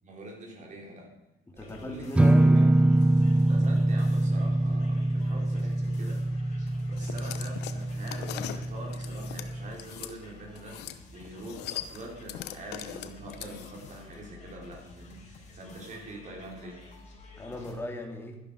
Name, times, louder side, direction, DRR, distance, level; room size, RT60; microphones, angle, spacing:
voice 1, 0.0-1.1 1.5-2.2 2.5-2.7 3.4-16.8, right 1 dB, 45° right, -1 dB, 4.7 m, -45 dB
voice 2, 1.5-2.6 17.4-18.4, left 1 dB, 15° left, 2 dB, 2.5 m, -37 dB
sound 1, 1.6-17.7, left 4 dB, 45° left, 5.0 m, -51 dB
sound 2, 2.2-9.7, right 1 dB, 5° right, 0.4 m, -24 dB
sound 3, 7.0-10.1 10.6-11.0 11.3-13.9, left 12 dB, 80° left, 0.9 m, -40 dB
12.0 x 11.5 x 5.2 m, 0.97 s
cardioid pair, 110°, 17 cm